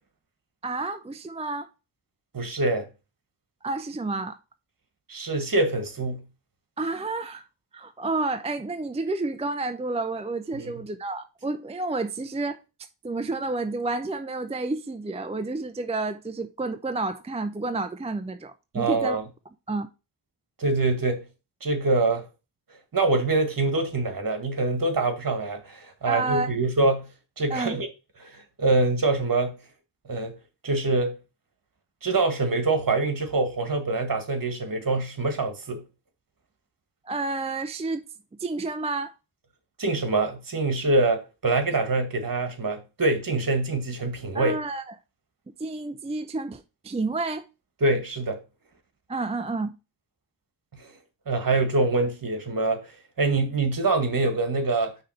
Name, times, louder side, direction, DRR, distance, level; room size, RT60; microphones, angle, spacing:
voice 1, 0.6-1.7 3.6-4.4 6.8-7.5 7.7-12.6 13.0-19.2 19.7-19.9 26.1-26.5 27.5-27.8 37.1-38.0 38.4-39.1 44.3-44.9 45.6-47.4 49.1-49.7, right 3 dB, 15° right, 0.5 m, -30 dB
voice 2, 2.3-2.9 5.1-6.3 10.5-10.7 18.7-19.2 20.6-21.3 21.6-22.3 22.9-27.1 27.4-27.9 28.2-29.6 30.1-30.3 30.6-31.2 32.0-35.8 39.8-44.6 47.8-48.4 50.7-50.9 51.3-54.9, right 2 dB, 50° right, 1.7 m, -25 dB
5.8 x 3.4 x 5.6 m
cardioid pair, 75°, 43 cm